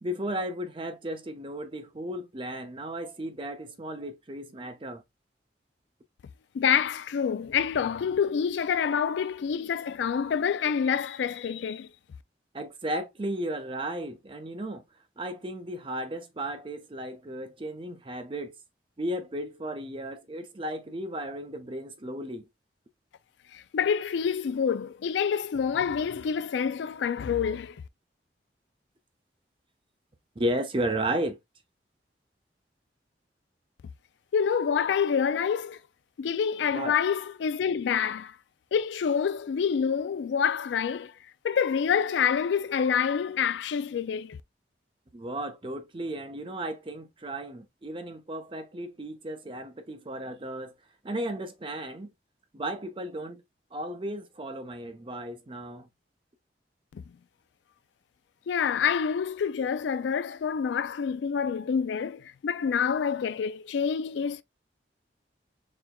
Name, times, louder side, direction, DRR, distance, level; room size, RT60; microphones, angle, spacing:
voice 1, 0.0-5.0 12.5-14.8 15.2-18.5 19.0-22.5 30.4-31.4 36.7-37.0 45.1-50.7 51.0-52.1 52.5-53.4 53.7-55.9, right 1 dB, 30° right, 0.6 m, -34 dB
voice 2, 6.5-11.9 23.5-27.8 34.3-35.8 36.2-38.4 38.7-41.1 41.4-44.4 56.9-57.0 58.5-64.4, left 7 dB, 80° left, 0.3 m, -27 dB
4.4 x 3.5 x 2.2 m
head